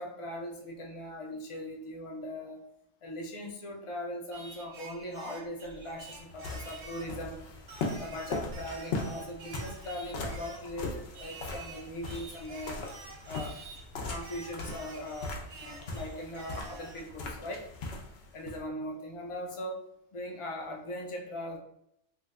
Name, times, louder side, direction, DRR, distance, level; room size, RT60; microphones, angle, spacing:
voice 1, 0.0-2.6 3.0-7.4 8.0-12.8 13.3-13.6 14.1-17.7 18.3-19.8 20.1-21.6, left 1 dB, 45° left, 0 dB, 0.4 m, -40 dB
Singing, 4.3-7.2 7.7-10.7 11.1-13.9 14.2-17.1, right 4 dB, 80° right, 0.9 m, -49 dB
sound 1, 5.7-18.6, left 3 dB, 65° left, 0.8 m, -40 dB
2.7 x 2.1 x 3.5 m, 0.74 s
omnidirectional pair, 1.2 m